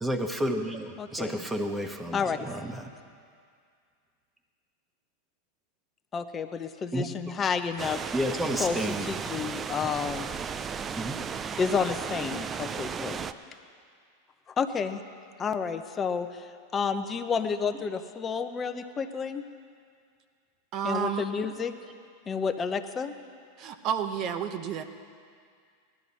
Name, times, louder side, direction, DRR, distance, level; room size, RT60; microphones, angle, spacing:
voice 1, 0.0-2.9 6.9-7.1 8.1-9.1 10.9-11.6 13.1-13.3, equal, 10° right, 5 dB, 1.2 m, -31 dB
voice 2, 1.0-1.4 2.1-2.5 6.1-8.0 8.6-10.3 11.6-13.3 14.6-15.0 15.4-16.5 16.7-19.4 20.8-21.7 22.3-23.1, left 6 dB, 25° left, 8 dB, 0.8 m, -30 dB
sound 1, 7.8-13.3, right 6 dB, 25° right, 0.5 m, -35 dB
voice 3, 20.7-21.2 23.6-24.8, right 8 dB, 45° right, 8 dB, 0.9 m, -30 dB
18.0 x 12.0 x 4.2 m, 2.2 s
hypercardioid pair, 100°, 0 cm